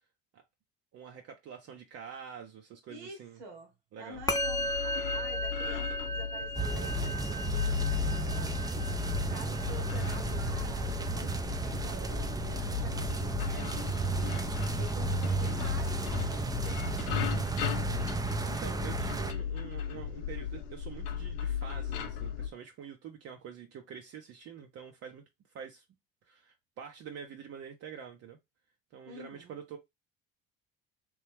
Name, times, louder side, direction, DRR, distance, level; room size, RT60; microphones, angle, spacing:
voice 1, 0.9-3.4 3.9-4.2 9.3-9.6 18.4-25.2 25.5-25.8 26.2-28.4 28.9-29.8, right 7 dB, 55° right, 0.7 m, -46 dB
voice 2, 2.9-8.8 9.3-17.6 29.1-29.6, right 1 dB, 80° right, 1.4 m, -49 dB
sound 1, 4.2-22.5, left 8 dB, 75° left, 0.6 m, -36 dB
Musical instrument, 4.3-13.8, equal, 10° left, 0.8 m, -37 dB
sound 2, 6.6-19.3, right 4 dB, 15° right, 0.5 m, -34 dB
3.1 x 2.6 x 3.4 m
hypercardioid pair, 65°, 30 cm